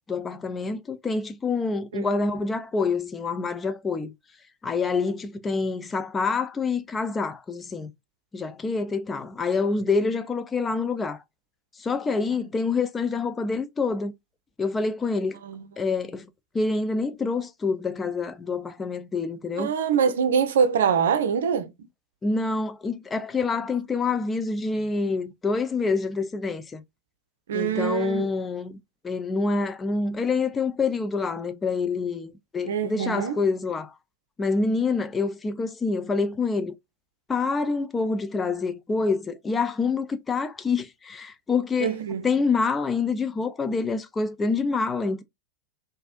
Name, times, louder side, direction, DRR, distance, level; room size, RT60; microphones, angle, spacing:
voice 1, 0.1-4.1 4.6-7.9 8.3-11.2 11.8-14.1 14.6-15.4 15.8-16.3 16.5-19.7 22.2-26.8 27.5-28.8 29.0-33.9 34.4-36.7 37.3-41.9 42.2-45.2, left 4 dB, 15° left, 0.4 m, -26 dB
voice 2, 19.6-21.7 27.5-28.3 32.6-33.4 41.8-42.2, right 7 dB, 60° right, 0.6 m, -24 dB
4.2 x 2.6 x 2.4 m
figure-of-eight pair, 90°, 0 cm